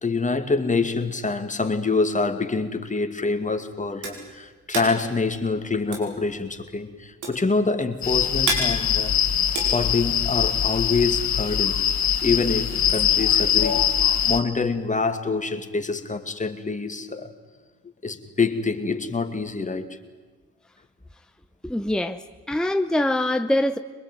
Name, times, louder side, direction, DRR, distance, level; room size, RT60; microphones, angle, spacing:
voice 1, 0.0-9.2 9.7-11.8 12.2-13.9 14.2-17.3 18.0-20.0, left 4 dB, 25° left, 7 dB, 2.4 m, -26 dB
sound 1, 3.4-10.6, right 2 dB, 90° right, 5.4 m, -32 dB
sound 2, 8.0-14.4, left 9 dB, 70° left, 2.0 m, -22 dB
voice 2, 21.6-23.8, left 1 dB, 5° left, 8 dB, 0.9 m, -24 dB
24.0 x 21.0 x 9.3 m, 1.3 s
cardioid pair, 70°, 29 cm